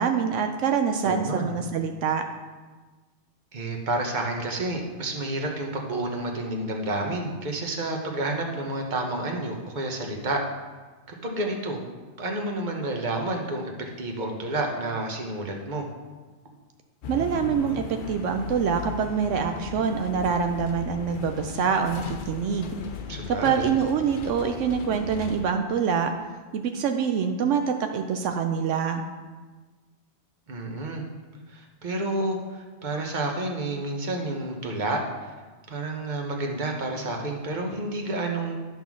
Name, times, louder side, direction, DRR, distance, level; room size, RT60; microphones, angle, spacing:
voice 1, 0.0-2.2 17.1-22.8 23.3-26.1 26.5-29.0, right 6 dB, 80° right, 5 dB, 0.9 m, -25 dB
voice 2, 1.0-1.6 3.5-10.4 11.1-11.8 12.2-13.7 14.0-15.9 23.1-23.7 30.5-31.0 31.5-35.0 35.7-38.6, right 2 dB, 40° right, 1 dB, 1.2 m, -30 dB
sound 1, 17.0-25.5, left 6 dB, 55° left, 0.6 m, -37 dB
11.0 x 3.7 x 6.1 m, 1.3 s
omnidirectional pair, 1.2 m